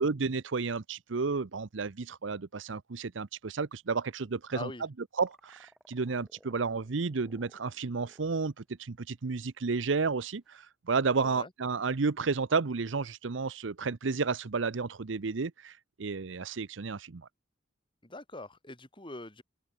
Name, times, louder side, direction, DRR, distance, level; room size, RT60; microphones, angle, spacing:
voice 1, 0.0-4.7 5.2-17.3, right 4 dB, 75° right, 0.7 m, -32 dB
voice 2, 4.5-4.8 11.1-11.5 18.0-19.4, left 2 dB, 25° left, 4.4 m, -43 dB
sound 1, 5.2-8.4 8.8-8.9 10.4-10.5, equal, ahead, 5.9 m, -62 dB
open air
head